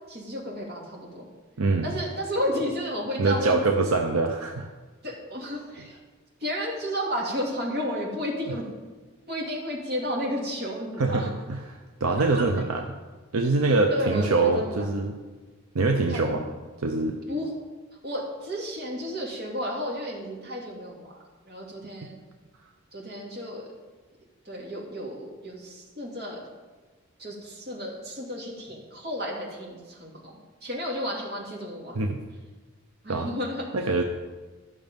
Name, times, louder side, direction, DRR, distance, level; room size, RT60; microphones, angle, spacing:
voice 1, 0.1-1.3 1.8-3.9 5.0-6.0 6.4-8.6 9.3-11.3 12.3-12.6 13.9-14.9 16.1-16.3 17.3-17.5 18.0-21.2 21.4-22.2 22.9-23.7 24.4-26.4 27.2-32.0 33.0-33.7, equal, 45° right, -3 dB, 2.7 m, -32 dB
voice 2, 1.6-1.9 3.2-4.7 11.0-11.6 12.0-12.8 13.3-15.1 15.7-16.4 16.8-17.2 31.9-32.2 33.1-33.3 33.7-34.0, right 3 dB, 75° right, 3 dB, 0.7 m, -24 dB
13.0 x 6.3 x 5.2 m, 1.3 s
head